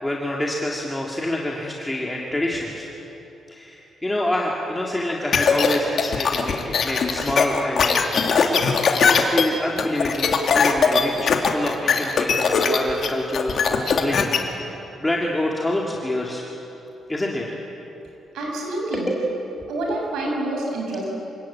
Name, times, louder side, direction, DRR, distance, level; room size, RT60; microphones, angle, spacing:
voice 1, 0.0-2.9 3.5-8.5 9.1-16.4 17.1-17.6 18.9-19.2 19.6-20.1, left 1 dB, 10° left, -2 dB, 2.2 m, -27 dB
sound 1, 5.3-14.4, left 5 dB, 50° left, 2.4 m, -20 dB
voice 2, 18.3-19.1 19.7-21.0, right 2 dB, 85° right, -1 dB, 6.9 m, -27 dB
28.0 x 19.0 x 8.7 m, 3.0 s
cardioid pair, 140°, 0 cm